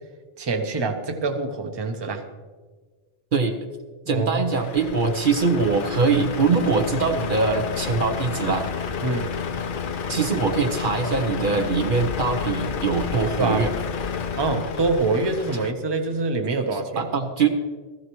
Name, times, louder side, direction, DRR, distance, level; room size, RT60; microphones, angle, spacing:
voice 1, 0.4-2.2 4.1-4.5 9.0-9.3 13.4-13.7 14.4-17.1, right 3 dB, 25° right, 5 dB, 0.9 m, -25 dB
voice 2, 4.1-8.7 10.1-13.7 16.7-17.5, right 4 dB, 60° right, 5 dB, 1.0 m, -22 dB
Truck, 4.5-15.7, left 6 dB, 60° left, 0.8 m, -30 dB
15.5 x 14.5 x 3.1 m, 1.4 s
omnidirectional pair, 1.0 m